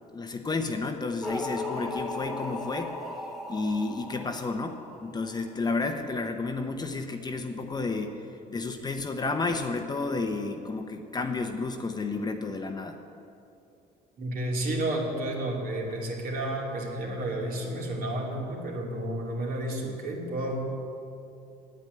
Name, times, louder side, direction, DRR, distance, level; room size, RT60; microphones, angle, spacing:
voice 1, 0.1-2.9 3.5-8.2 8.5-13.0, left 3 dB, 25° left, 5 dB, 0.9 m, -31 dB
sound 1, 1.2-5.4, left 2 dB, ahead, 1.3 m, -36 dB
voice 2, 14.2-20.6, right 1 dB, 60° right, -1 dB, 2.8 m, -31 dB
9.1 x 8.9 x 9.4 m, 2.6 s
cardioid pair, 110°, 17 cm